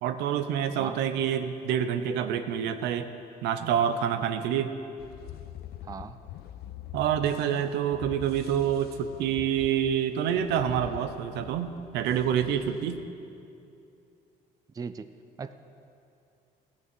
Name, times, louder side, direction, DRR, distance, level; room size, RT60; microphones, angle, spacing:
voice 1, 0.0-3.1 3.4-4.7 6.9-13.0, right 9 dB, 90° right, 9 dB, 0.7 m, -27 dB
sound 1, 5.0-13.1, left 12 dB, 70° left, 0.5 m, -45 dB
voice 2, 5.8-6.2 14.7-15.1 15.4-15.5, right 5 dB, 20° right, 11 dB, 0.4 m, -38 dB
16.5 x 5.9 x 6.2 m, 2.6 s
cardioid pair, 110°, 17 cm